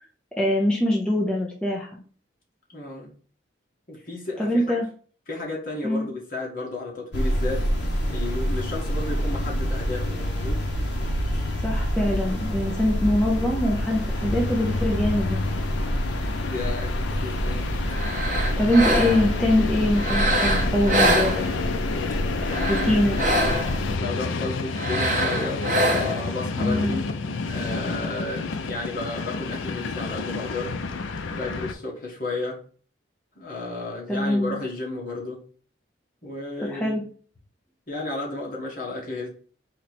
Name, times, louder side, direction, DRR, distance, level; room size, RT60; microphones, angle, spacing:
voice 1, 0.4-1.9 4.4-4.9 5.8-6.1 11.6-15.6 18.6-21.4 22.7-23.2 26.6-27.0 34.1-34.6 36.7-37.0, left 1 dB, 5° left, -3 dB, 0.6 m, -23 dB
voice 2, 2.7-3.1 3.9-4.8 5.3-7.7 8.1-10.6 16.4-17.7 22.4-23.0 23.9-27.0 27.4-30.8 31.3-32.6 33.3-35.4 36.2-37.0 37.9-39.3, left 2 dB, 45° left, -3 dB, 1.5 m, -33 dB
sound 1, 7.1-24.0, equal, 65° left, 1.0 m, -27 dB
Train, 12.8-31.7, left 4 dB, 80° left, 0.5 m, -31 dB
sound 2, 17.9-19.4 20.0-21.8 22.4-23.9 24.7-26.3, right 1 dB, 40° right, 0.9 m, -25 dB
4.2 x 3.0 x 4.2 m, 0.43 s
head